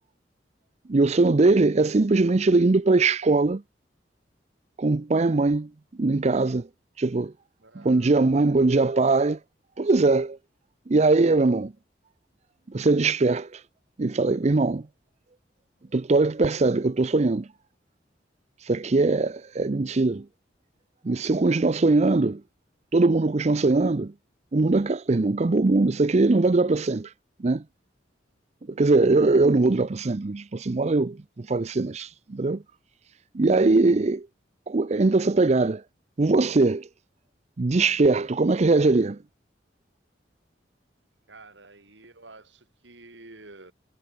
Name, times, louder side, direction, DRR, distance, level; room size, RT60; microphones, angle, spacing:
voice 1, 0.9-3.6 4.8-5.7 6.0-6.7 7.0-7.3 7.8-9.4 9.8-10.4 10.9-11.7 12.7-13.6 14.0-14.8 15.9-17.5 18.6-20.2 21.0-22.4 22.9-24.1 24.5-27.1 27.4-27.6 28.7-32.6 33.3-34.3 34.7-35.8 36.2-36.9 37.6-39.2, right 3 dB, 40° right, 0.5 m, -21 dB
voice 2, 7.6-8.5 41.3-43.7, right 2 dB, 85° right, 4.5 m, -49 dB
head